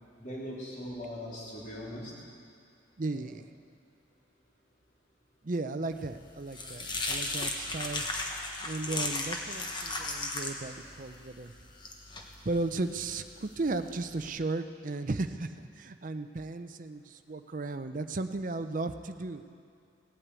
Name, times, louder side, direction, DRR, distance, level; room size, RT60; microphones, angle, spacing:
voice 1, 0.2-2.1 3.1-3.2, equal, 40° left, -6 dB, 3.4 m, -40 dB
voice 2, 3.0-3.4 5.4-8.1 8.6-11.5 12.4-19.4, right 3 dB, 40° right, 9 dB, 0.6 m, -35 dB
sound 1, 6.0-14.3, left 2 dB, 25° left, 1.1 m, -37 dB
17.5 x 9.0 x 8.2 m, 2.4 s
head